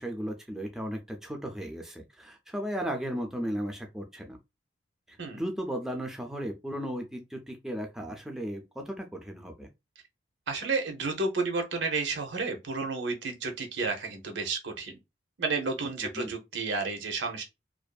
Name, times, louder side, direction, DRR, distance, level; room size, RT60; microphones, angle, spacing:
voice 1, 0.0-4.4 5.1-9.7 16.2-16.3, equal, 5° right, 0.4 m, -35 dB
voice 2, 10.5-15.0 15.4-17.4, right 3 dB, 90° right, 0.7 m, -31 dB
2.5 x 2.4 x 2.2 m
head